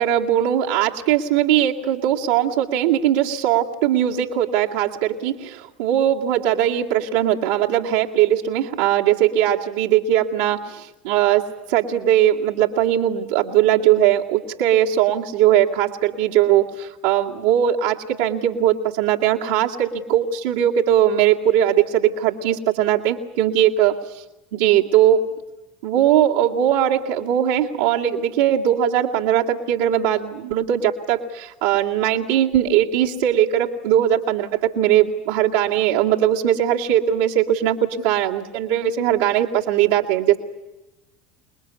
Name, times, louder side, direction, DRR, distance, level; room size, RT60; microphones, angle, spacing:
voice 1, 0.0-23.9 24.5-25.3 25.8-40.4, right 11 dB, 70° right, -3 dB, 2.2 m, -20 dB
27.5 x 21.0 x 8.3 m, 0.98 s
figure-of-eight pair, 70°, 0 cm